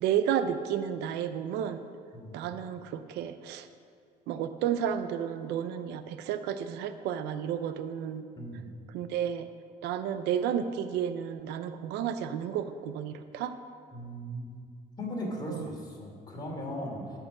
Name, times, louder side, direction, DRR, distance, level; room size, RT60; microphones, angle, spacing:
voice 1, 0.0-1.8 2.3-3.7 4.3-8.3 8.9-9.5 9.8-13.5 15.5-15.7, right 9 dB, 90° right, 10 dB, 0.6 m, -32 dB
voice 2, 8.4-8.7 13.9-14.5 15.0-17.2, equal, 25° left, -2 dB, 2.9 m, -37 dB
12.0 x 5.7 x 7.3 m, 2.2 s
cardioid pair, 110°, 17 cm